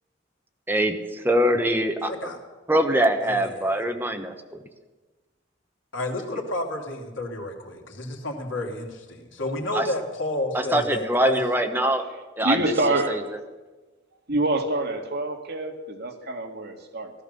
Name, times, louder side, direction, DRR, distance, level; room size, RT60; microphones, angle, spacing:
voice 1, 0.7-2.1 2.7-4.3 9.7-9.8 10.7-12.0 12.4-12.7 13.1-13.2, right 1 dB, 10° right, 5 dB, 1.2 m, -23 dB
voice 2, 2.1-2.4 3.2-3.8 5.9-11.4, left 1 dB, 90° left, 1 dB, 2.8 m, -31 dB
voice 3, 12.4-13.2 14.3-17.1, right 2 dB, 60° right, 3 dB, 1.9 m, -26 dB
16.0 x 13.0 x 6.8 m, 1.3 s
head